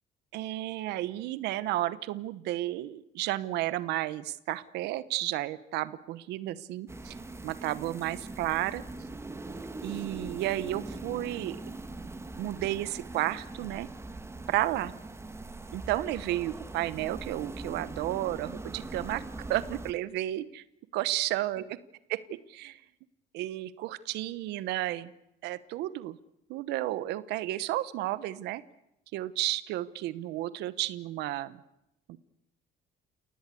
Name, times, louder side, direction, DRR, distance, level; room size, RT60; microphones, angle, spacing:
voice 1, 0.3-7.2 7.4-8.8 9.8-11.6 12.4-13.9 14.5-14.9 15.7-19.2 19.5-20.6 20.9-21.8 22.1-22.8 23.3-25.1 25.4-26.2 26.5-28.6 29.1-31.6 32.1-32.2, right 15 dB, 85° right, 16 dB, 1.0 m, -32 dB
sound 1, 6.9-19.9, right 2 dB, 15° right, 1.6 m, -42 dB
29.5 x 18.0 x 8.4 m, 0.86 s
cardioid pair, 110°, 17 cm